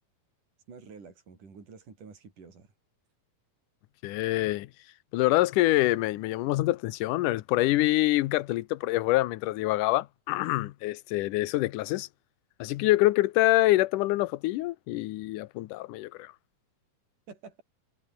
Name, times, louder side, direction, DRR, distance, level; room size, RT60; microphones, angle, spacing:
voice 1, 0.7-2.7 17.3-17.6, right 5 dB, 65° right, 6.8 m, -48 dB
voice 2, 4.0-4.7 5.1-12.1 12.6-16.3, left 17 dB, 75° left, 2.2 m, -26 dB
omnidirectional pair, 4.0 m